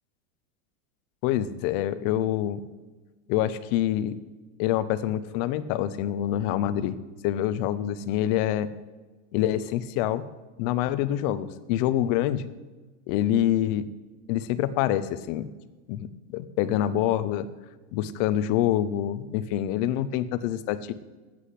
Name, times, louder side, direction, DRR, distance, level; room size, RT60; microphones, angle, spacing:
voice 1, 1.2-2.6 3.3-4.2 4.6-7.0 7.2-8.7 9.3-10.2 10.6-12.5 13.1-13.9 14.3-15.5 15.9-17.5 17.9-20.9, left 12 dB, 35° left, 14 dB, 0.4 m, -26 dB
7.7 x 6.5 x 7.9 m, 1.2 s
supercardioid pair, 155°, 40 cm